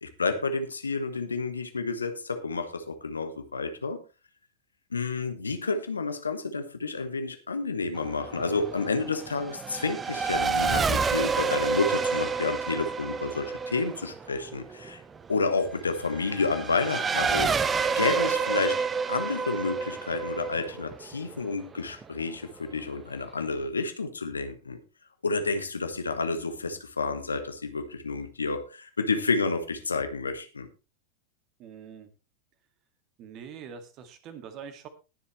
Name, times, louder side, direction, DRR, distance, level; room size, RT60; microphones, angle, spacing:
voice 1, 0.0-4.0 4.9-15.0 15.3-17.7 17.9-24.8 25.2-30.7, left 4 dB, 75° left, 8 dB, 1.5 m, -30 dB
Race car auto racing / Accelerating revving vroom, 8.0-22.0, right 5 dB, 20° right, 0.9 m, -29 dB
voice 2, 31.6-32.1 33.2-34.9, right 7 dB, 40° right, 9 dB, 2.1 m, -44 dB
20.5 x 7.3 x 3.2 m, 0.30 s
figure-of-eight pair, 90°, 0 cm